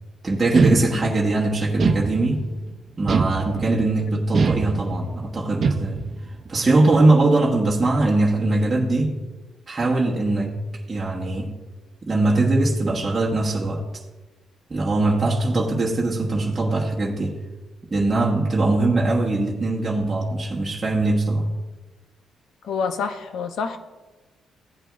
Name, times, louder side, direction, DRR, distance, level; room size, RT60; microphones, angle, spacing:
voice 1, 0.2-2.4 3.0-6.0 6.4-9.2 9.7-10.5 10.9-11.5 12.0-13.8 14.7-17.4 17.9-21.4, right 2 dB, 25° right, -4 dB, 1.4 m, -21 dB
sound 1, 0.5-1.3 1.8-2.6 3.1-3.9 4.3-5.1 5.6-6.2, right 4 dB, 50° right, 0.8 m, -22 dB
voice 2, 22.6-23.8, left 5 dB, 70° left, 8 dB, 0.8 m, -27 dB
15.5 x 8.8 x 2.6 m, 1.2 s
cardioid pair, 90°, 0 cm